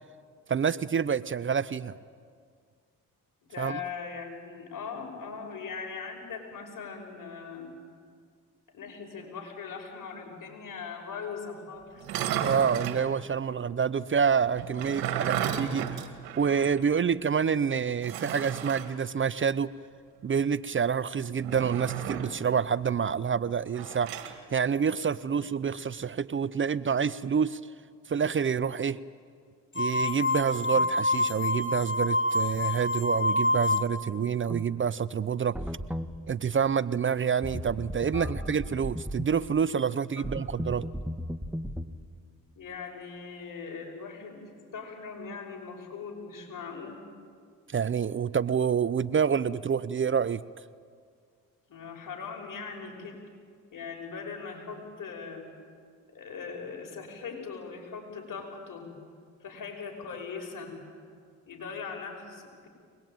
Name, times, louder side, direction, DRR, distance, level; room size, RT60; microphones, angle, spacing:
voice 1, 0.5-2.0 3.6-3.8 12.4-15.9 16.4-19.7 20.2-24.1 24.5-27.6 28.1-29.0 29.8-35.6 36.3-40.9 47.7-50.4, right 7 dB, 35° right, 18 dB, 0.6 m, -27 dB
voice 2, 3.4-7.8 8.7-12.1 30.6-30.8 38.1-38.5 40.2-40.3 42.6-47.0 51.7-53.2 53.7-55.4 56.1-58.9 59.4-60.8 61.5-62.7, left 5 dB, 60° left, 2 dB, 5.7 m, -40 dB
sound 1, 12.0-13.1 14.6-16.8 17.1-17.2 18.0-18.9 21.4-22.4 23.7-24.4, right 10 dB, 85° right, 1.9 m, -33 dB
sound 2, 29.8-34.1, left 2 dB, 35° left, 2.6 m, -27 dB
sound 3, 34.5-34.7 35.5-36.1 37.4-39.3 40.2-41.9, equal, 5° right, 1.4 m, -35 dB
23.5 x 20.5 x 9.1 m, 2.1 s
supercardioid pair, 65°, 35 cm